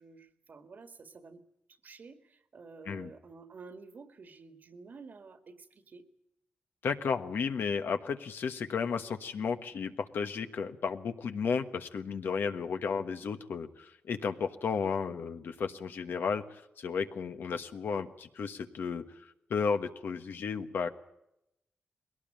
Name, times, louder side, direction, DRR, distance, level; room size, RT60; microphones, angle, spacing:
voice 1, 0.0-1.4 1.8-6.0, right 4 dB, 60° right, 9 dB, 1.9 m, -51 dB
voice 2, 6.8-19.0 19.5-20.9, left 5 dB, 85° left, 8 dB, 1.3 m, -33 dB
21.0 x 18.0 x 8.9 m, 0.85 s
wide cardioid pair, 90°, 3 cm